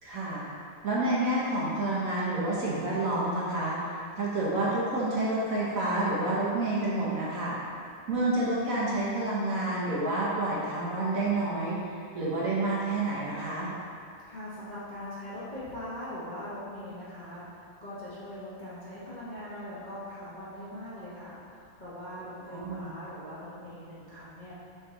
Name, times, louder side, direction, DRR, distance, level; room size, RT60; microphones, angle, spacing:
voice 1, 0.0-7.6 8.1-11.8 12.1-13.7 22.5-22.9, right 2 dB, 55° right, -6 dB, 1.2 m, -29 dB
voice 2, 14.3-24.5, left 1 dB, 35° left, -10 dB, 0.7 m, -41 dB
6.2 x 3.9 x 3.9 m, 2.6 s
omnidirectional pair, 2.0 m